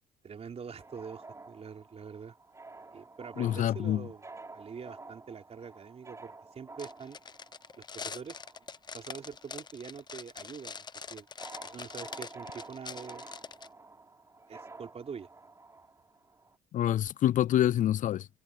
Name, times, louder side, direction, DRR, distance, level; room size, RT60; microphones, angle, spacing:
voice 1, 0.2-2.3 2.9-7.2 7.8-8.4 8.9-11.3 11.7-13.3 14.5-15.3, right 6 dB, 40° right, 4.0 m, -44 dB
sound 1, 0.8-9.8 10.0-16.6, right 3 dB, 15° right, 4.1 m, -50 dB
voice 2, 3.4-4.1 16.7-18.3, left 12 dB, 50° left, 0.4 m, -26 dB
sound 2, 6.8-13.7, left 5 dB, 25° left, 0.8 m, -44 dB
cardioid pair, 110°, 17 cm